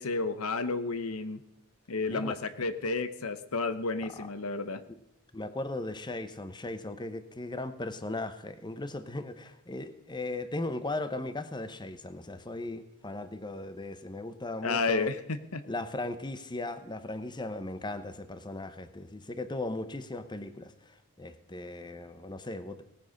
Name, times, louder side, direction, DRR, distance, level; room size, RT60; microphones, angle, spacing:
voice 1, 0.0-1.4 1.9-4.8 14.6-15.6, left 3 dB, 75° left, 1.0 m, -31 dB
voice 2, 5.3-15.1 15.7-22.8, left 2 dB, 20° left, 0.9 m, -37 dB
18.0 x 9.1 x 6.5 m
head